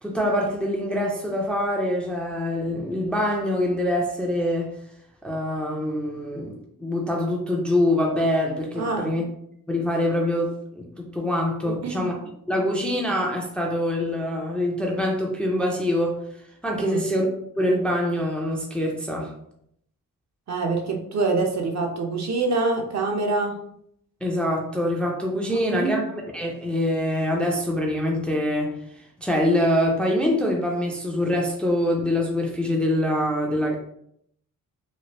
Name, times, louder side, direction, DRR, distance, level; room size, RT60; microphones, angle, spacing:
voice 1, 0.0-4.7 5.2-9.2 9.7-12.2 12.5-16.2 16.6-17.3 17.6-19.3 24.2-28.8 29.2-33.8, left 1 dB, 5° left, -1 dB, 0.4 m, -24 dB
voice 2, 8.8-9.2 11.6-12.1 16.8-17.1 20.5-23.6 25.5-26.1, right 3 dB, 50° right, 2 dB, 0.6 m, -26 dB
3.1 x 2.4 x 2.9 m, 0.72 s
wide cardioid pair, 140°, 34 cm